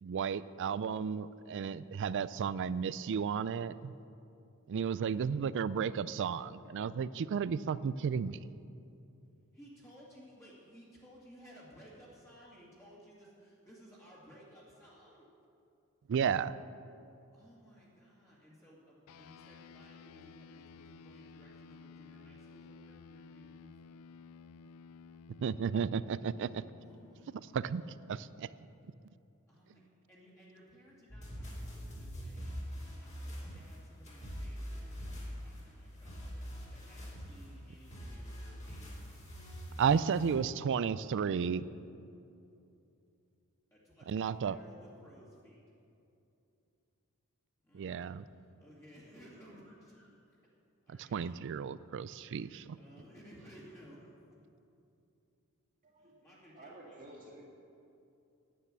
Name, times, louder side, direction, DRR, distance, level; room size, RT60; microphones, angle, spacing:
voice 1, 0.0-3.9 4.7-8.5 16.1-16.6 25.4-26.6 27.3-27.8 28.1-28.5 39.8-41.6 44.1-44.6 47.7-48.2 50.9-52.8, right 6 dB, 55° right, 17 dB, 0.3 m, -33 dB
voice 2, 9.5-15.2 17.3-24.0 25.3-25.7 26.4-28.2 29.5-39.1 39.8-40.7 43.7-45.6 47.6-50.4 50.9-51.4 52.4-54.4 56.0-57.2, equal, 15° left, -7 dB, 2.2 m, -58 dB
sound 1, 19.1-28.8, left 5 dB, 70° left, 0.4 m, -55 dB
sound 2, 31.1-40.3, equal, 35° left, 2.9 m, -44 dB
voice 3, 55.8-56.2 56.5-57.4, right 1 dB, 40° right, -3 dB, 2.1 m, -52 dB
10.0 x 9.2 x 7.4 m, 2.7 s
head